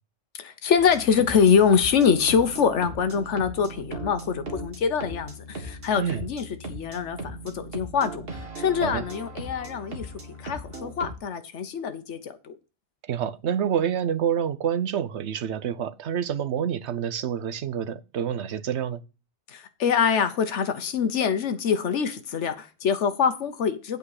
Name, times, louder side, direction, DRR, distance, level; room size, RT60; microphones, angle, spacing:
voice 1, 0.4-8.3 8.6-10.1 10.4-12.5 19.5-24.0, left 6 dB, 85° left, 1.3 m, -24 dB
sound 1, 0.8-11.1, right 1 dB, 55° right, 2.1 m, -38 dB
voice 2, 13.1-19.0, right 8 dB, 75° right, 1.1 m, -27 dB
8.6 x 5.3 x 6.5 m
omnidirectional pair, 1.2 m